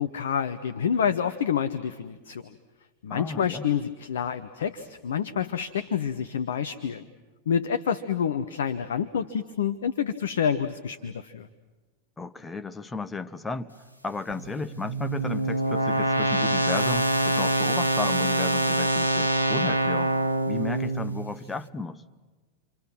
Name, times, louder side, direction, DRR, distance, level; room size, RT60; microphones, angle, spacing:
voice 1, 0.0-2.5 3.0-7.0 7.5-11.5, left 8 dB, 65° left, 10 dB, 0.9 m, -28 dB
voice 2, 3.1-3.7 12.2-13.7 14.0-20.2 20.5-22.0, left 3 dB, 10° left, 9 dB, 1.0 m, -34 dB
sound 1, 14.3-21.4, right 1 dB, 85° right, 1.0 m, -25 dB
29.5 x 26.0 x 6.1 m, 1.3 s
figure-of-eight pair, 90°, 0 cm